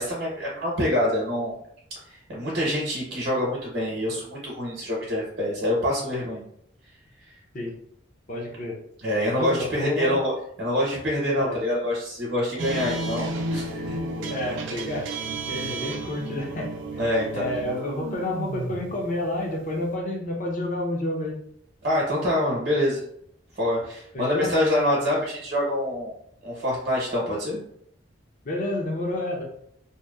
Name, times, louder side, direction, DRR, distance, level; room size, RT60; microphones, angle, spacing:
voice 1, 0.0-1.5 2.3-6.4 9.0-10.3 10.6-14.0 15.5-15.7 17.0-17.5 21.8-23.0 23.6-26.1 26.4-27.6, left 1 dB, 50° right, -5 dB, 0.8 m, -26 dB
voice 2, 8.3-8.8 9.4-10.2 11.4-11.6 12.7-12.8 14.3-15.1 15.5-17.1 17.3-21.4 24.1-24.5 28.4-29.4, left 1 dB, 40° left, 0 dB, 0.5 m, -30 dB
sound 1, 12.6-19.9, right 2 dB, 70° right, 0.4 m, -33 dB
2.7 x 2.1 x 2.3 m, 0.69 s
head